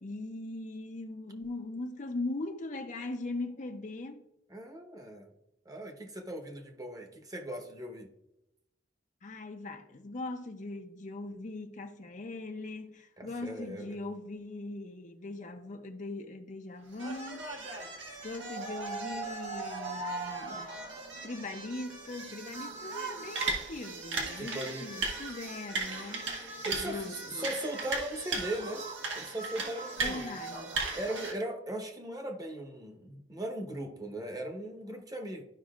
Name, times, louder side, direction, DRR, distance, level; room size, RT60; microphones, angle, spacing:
voice 1, 0.0-4.2 9.2-17.5 18.2-20.8 21.2-26.4 26.6-27.5 30.0-31.0, left 2 dB, 40° left, 0.6 m, -40 dB
voice 2, 4.5-5.3 5.6-8.1 13.2-14.0 24.1-25.0 26.6-28.8 29.1-30.3 30.9-35.4, right 1 dB, 20° right, 1.0 m, -38 dB
sound 1, 16.9-31.3, right 3 dB, 90° right, 1.7 m, -37 dB
12.5 x 5.3 x 2.4 m
head